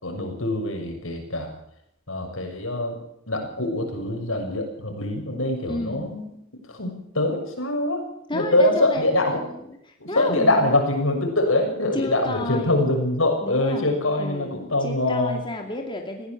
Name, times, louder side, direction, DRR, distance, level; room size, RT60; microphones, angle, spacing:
voice 1, 0.0-1.6 2.1-3.0 3.3-6.3 6.7-8.0 8.3-9.4 10.0-15.4, left 2 dB, 80° left, 3 dB, 6.7 m, -24 dB
voice 2, 5.7-6.1 8.3-10.8 11.9-12.9 13.4-16.3, left 1 dB, 25° left, 2 dB, 2.6 m, -32 dB
21.0 x 16.0 x 8.4 m, 0.74 s
head